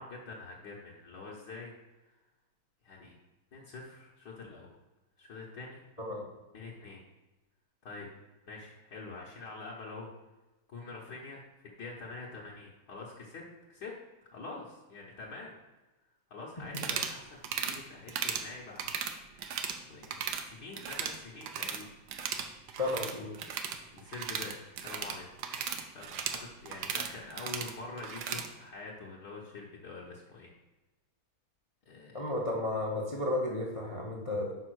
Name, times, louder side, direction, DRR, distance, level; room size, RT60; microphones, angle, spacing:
voice 1, 0.0-1.7 2.0-2.1 2.8-3.2 3.5-4.8 5.2-5.8 6.5-7.0 7.8-8.1 8.5-10.1 10.7-13.4 13.7-13.9 14.3-15.5 16.3-18.9 19.2-21.9 23.9-25.3 25.6-30.5 31.8-32.3, left 3 dB, 60° left, -5 dB, 1.6 m, -45 dB
sound 1, 16.7-17.2 17.4-17.8 18.1-18.5 18.8-19.8 20.0-20.4 20.7-21.8 22.1-28.5, right 7 dB, 70° right, 1.3 m, -36 dB
voice 2, 22.8-23.4 32.1-34.5, left 2 dB, 30° left, -2 dB, 0.6 m, -33 dB
5.5 x 5.5 x 6.2 m, 1.1 s
omnidirectional pair, 2.2 m